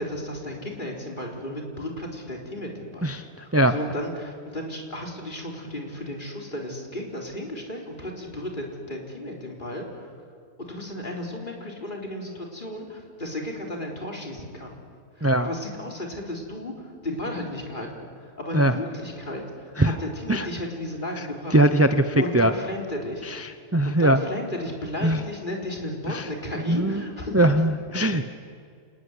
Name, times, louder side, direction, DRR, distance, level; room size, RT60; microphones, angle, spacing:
voice 1, 0.0-10.1 10.6-14.7 15.2-21.6 22.2-23.5 23.8-27.4, left 1 dB, 30° left, 0 dB, 4.1 m, -34 dB
voice 2, 21.5-22.5 23.2-24.2 25.0-25.2 26.1-26.3 26.7-27.0 27.3-28.2, right 1 dB, 20° right, 9 dB, 0.4 m, -21 dB
28.0 x 19.0 x 9.8 m, 2.2 s
omnidirectional pair, 1.8 m